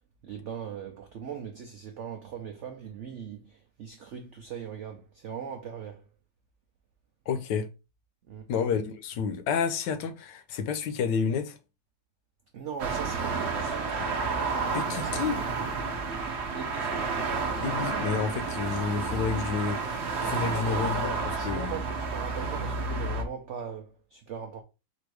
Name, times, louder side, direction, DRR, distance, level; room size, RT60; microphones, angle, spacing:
voice 1, 0.2-6.0 8.3-8.5 12.5-14.0 14.9-15.2 16.5-17.2 20.5-21.0 21.3-24.6, right 7 dB, 90° right, 0.6 m, -40 dB
voice 2, 7.3-7.7 8.5-11.6 14.0-14.1 14.7-15.4 17.6-21.8, left 6 dB, 75° left, 1.3 m, -30 dB
sound 1, 12.8-23.2, right 4 dB, 55° right, 0.8 m, -30 dB
4.3 x 2.6 x 4.6 m
omnidirectional pair, 2.0 m